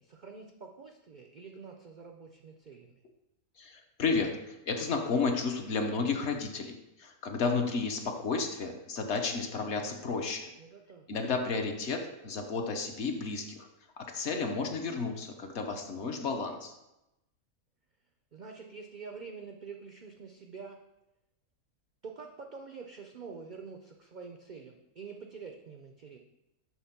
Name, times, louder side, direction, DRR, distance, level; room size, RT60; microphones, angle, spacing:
voice 1, 0.0-3.0 10.6-11.1 18.3-20.8 22.0-26.2, right 5 dB, 70° right, 3 dB, 0.4 m, -46 dB
voice 2, 3.6-10.5 11.1-13.7 14.0-16.7, left 4 dB, 55° left, 4 dB, 1.0 m, -32 dB
7.3 x 3.5 x 5.7 m, 0.91 s
omnidirectional pair, 1.5 m